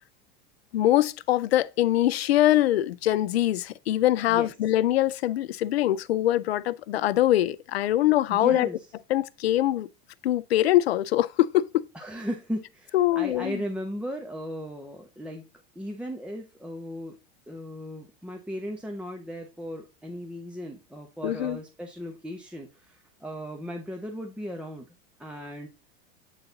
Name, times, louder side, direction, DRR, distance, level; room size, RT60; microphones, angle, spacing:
voice 1, 0.7-8.7 9.1-9.9 10.2-11.8 12.9-13.6 21.2-21.6, left 14 dB, 90° left, 0.6 m, -23 dB
voice 2, 8.3-8.9 11.9-15.5 15.7-17.2 17.5-24.9 25.2-25.7, equal, 5° right, 1.1 m, -36 dB
8.5 x 3.9 x 3.9 m
hypercardioid pair, 110°, 30 cm